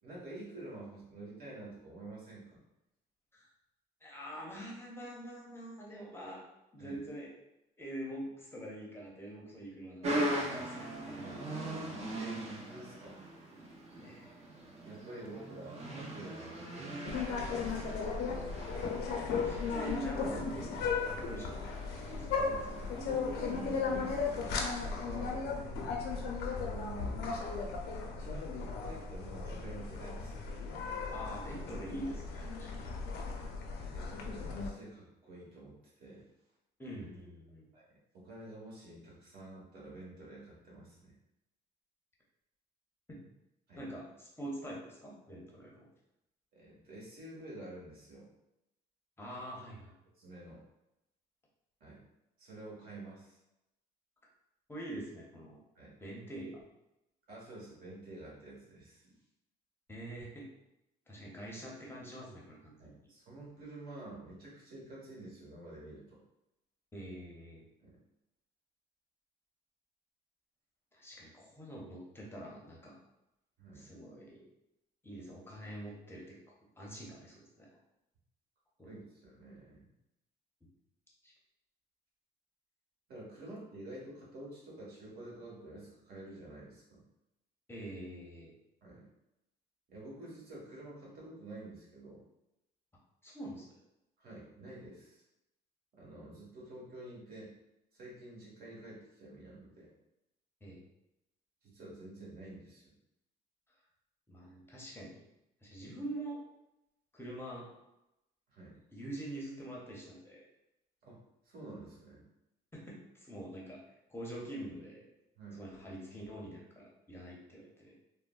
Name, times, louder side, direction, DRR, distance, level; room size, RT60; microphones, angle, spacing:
voice 1, 0.0-2.6 6.8-7.0 12.1-13.2 14.8-18.0 22.5-25.5 26.7-27.3 28.1-30.3 33.1-33.2 33.9-36.2 37.7-37.8 38.1-41.2 43.7-43.9 46.5-48.3 50.2-50.6 51.8-52.0 52.4-53.4 55.7-55.9 57.3-59.1 62.8-66.2 67.8-68.0 73.6-73.9 78.8-79.9 83.1-87.0 88.8-89.1 89.9-92.2 94.2-95.2 95.9-97.5 98.0-99.9 101.6-102.9 108.5-108.8 111.0-111.2 111.4-112.2 115.4-115.6, right 2 dB, 65° right, -5 dB, 1.2 m, -49 dB
voice 2, 4.0-6.4 6.7-7.3 7.8-11.5 14.0-14.3 18.8-18.9 19.4-23.0 31.1-32.9 36.8-37.7 43.1-43.2 43.8-45.9 49.2-49.9 54.7-55.6 56.0-56.6 59.9-60.5 61.1-62.9 66.9-67.6 70.9-73.0 73.7-74.5 75.0-76.4 76.8-77.7 78.8-78.9 81.2-81.3 87.7-88.5 93.2-93.7 100.6-100.8 104.3-105.2 105.6-106.4 107.1-107.7 108.9-110.4 112.7-113.8 114.1-115.0 115.6-117.9, right 1 dB, 15° left, -4 dB, 0.6 m, -45 dB
sound 1, 10.0-24.4, right 1 dB, 40° right, 0.6 m, -41 dB
sound 2, 17.1-34.7, left 5 dB, 75° left, 0.5 m, -36 dB
3.5 x 2.1 x 2.3 m, 0.89 s
cardioid pair, 110°, 17 cm